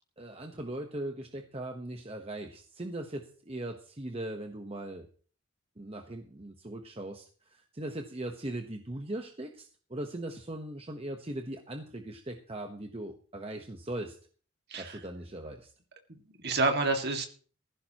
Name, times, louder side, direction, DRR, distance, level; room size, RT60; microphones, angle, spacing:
voice 1, 0.2-5.1 5.8-14.2 14.8-15.7, right 1 dB, 25° right, 4 dB, 1.1 m, -39 dB
voice 2, 16.1-17.3, right 3 dB, 50° right, 4 dB, 2.0 m, -29 dB
16.5 x 15.0 x 3.0 m, 0.42 s
head